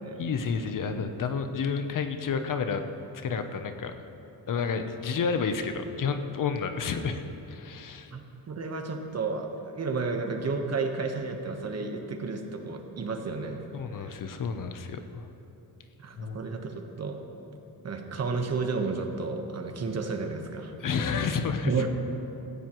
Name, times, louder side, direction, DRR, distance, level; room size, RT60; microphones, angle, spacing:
voice 1, 0.2-2.8 3.2-3.9 4.5-8.1 13.7-15.3 16.2-16.4 20.8-21.7, left 5 dB, 50° left, 8 dB, 0.8 m, -30 dB
voice 2, 8.5-13.6 13.9-14.1 16.0-17.2 17.8-20.7 21.6-21.9, right 4 dB, 40° right, 4 dB, 1.2 m, -32 dB
17.0 x 15.0 x 3.1 m, 3.0 s
cardioid pair, 135°, 41 cm